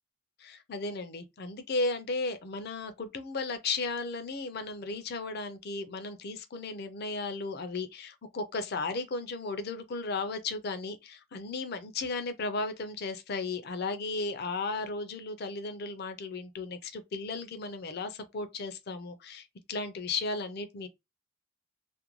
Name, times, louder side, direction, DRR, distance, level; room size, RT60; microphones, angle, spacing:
voice 1, 0.4-20.9, left 3 dB, 50° left, 0.4 m, -35 dB
2.5 x 2.1 x 2.9 m
head